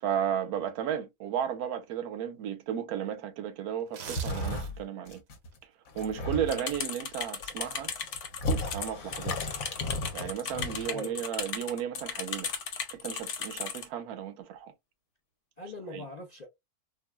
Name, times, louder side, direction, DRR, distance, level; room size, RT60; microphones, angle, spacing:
voice 1, 0.0-5.2 6.0-7.9 8.7-9.4 10.1-12.5 12.9-14.7 15.9-16.1, right 9 dB, 85° right, 1.1 m, -34 dB
sound 1, 3.8-5.0 5.4-5.5, right 6 dB, 60° right, 0.8 m, -42 dB
sound 2, 4.1-4.8 5.1-5.5 5.9-6.8 7.4-10.9, left 1 dB, 70° left, 1.2 m, -34 dB
sound 3, 6.5-13.9, left 6 dB, 85° left, 1.3 m, -36 dB
voice 2, 10.5-11.2 15.6-16.5, left 2 dB, 55° left, 0.4 m, -42 dB
3.8 x 2.3 x 2.2 m
omnidirectional pair, 1.6 m